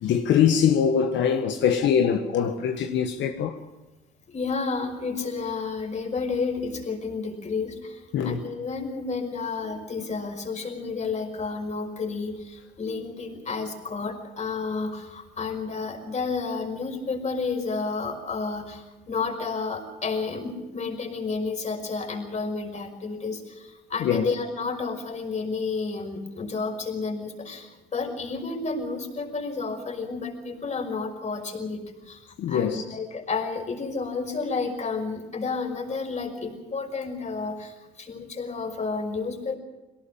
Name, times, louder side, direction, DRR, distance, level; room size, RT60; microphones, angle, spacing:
voice 1, 0.0-3.6 8.1-8.4 24.0-24.3 32.4-32.8, left 8 dB, 70° left, 1.6 m, -23 dB
voice 2, 4.3-31.8 32.1-39.6, left 4 dB, 35° left, 5.6 m, -31 dB
22.5 x 18.5 x 7.4 m
supercardioid pair, 85°, 19 cm